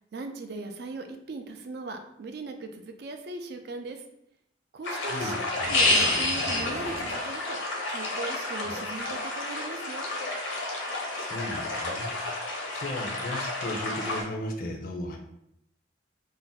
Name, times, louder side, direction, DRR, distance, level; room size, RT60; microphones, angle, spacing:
voice 1, 0.1-4.0 4.7-5.4 5.7-7.6 7.9-10.1, right 3 dB, 55° right, 6 dB, 0.3 m, -38 dB
sound 1, 4.8-14.2, left 2 dB, 80° left, 0.7 m, -29 dB
voice 2, 11.2-12.2 12.7-15.2, left 1 dB, 50° left, 2 dB, 0.5 m, -35 dB
2.5 x 2.1 x 3.9 m, 0.76 s
head